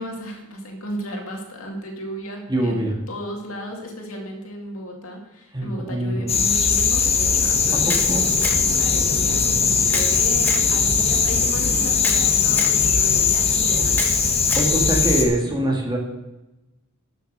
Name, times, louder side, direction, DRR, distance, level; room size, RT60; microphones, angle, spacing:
voice 1, 0.0-14.6, equal, 70° left, 1 dB, 2.3 m, -35 dB
voice 2, 2.5-2.9 5.5-6.4 7.7-8.3 13.7-13.8 14.6-16.0, right 1 dB, 20° right, 0 dB, 1.9 m, -24 dB
sound 1, 6.3-15.2, left 5 dB, 30° left, 1.2 m, -19 dB
Camera, 7.9-8.8 9.9-10.7 12.0-12.8 13.9-14.7, left 2 dB, 10° left, 1.3 m, -29 dB
12.5 x 6.7 x 6.5 m, 1.0 s
head